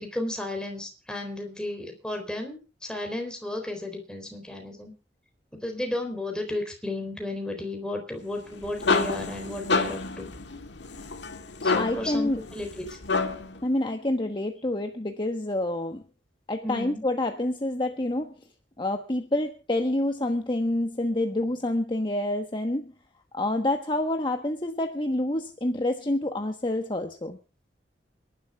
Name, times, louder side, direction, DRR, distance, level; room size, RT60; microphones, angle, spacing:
voice 1, 0.0-4.9 5.6-10.3 11.6-13.0 16.6-17.0, left 1 dB, 5° left, 3 dB, 3.8 m, -33 dB
sound 1, 8.4-13.6, left 4 dB, 70° left, 1.8 m, -29 dB
voice 2, 11.7-12.4 13.6-16.0 16.5-18.3 18.8-22.9 23.3-27.4, left 1 dB, 25° left, 5 dB, 1.2 m, -27 dB
29.0 x 11.5 x 2.4 m, 0.32 s
head